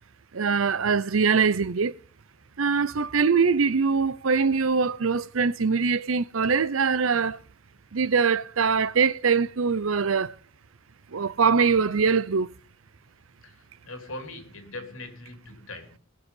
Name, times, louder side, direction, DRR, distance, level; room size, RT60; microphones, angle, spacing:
voice 1, 0.3-1.9 2.6-7.4 7.9-10.3 11.1-12.5, right 5 dB, 85° right, 0.7 m, -23 dB
voice 2, 13.4-16.0, left 2 dB, 80° left, 2.9 m, -41 dB
19.5 x 6.9 x 5.4 m
head